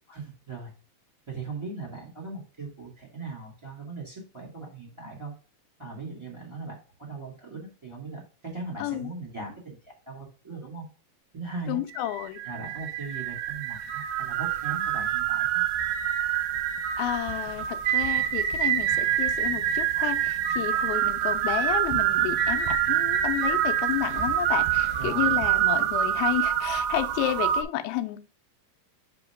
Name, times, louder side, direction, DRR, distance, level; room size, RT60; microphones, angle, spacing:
voice 1, 0.1-0.7 1.3-5.3 5.8-10.8 11.3-11.8 12.4-15.6 25.0-25.5, right 3 dB, 15° right, -3 dB, 1.1 m, -39 dB
voice 2, 8.8-9.1 11.7-12.4 17.0-28.2, left 14 dB, 80° left, 7 dB, 2.4 m, -31 dB
sound 1, 11.9-27.6, right 10 dB, 85° right, 2.5 m, -26 dB
7.7 x 3.0 x 4.9 m, 0.36 s
omnidirectional pair, 4.5 m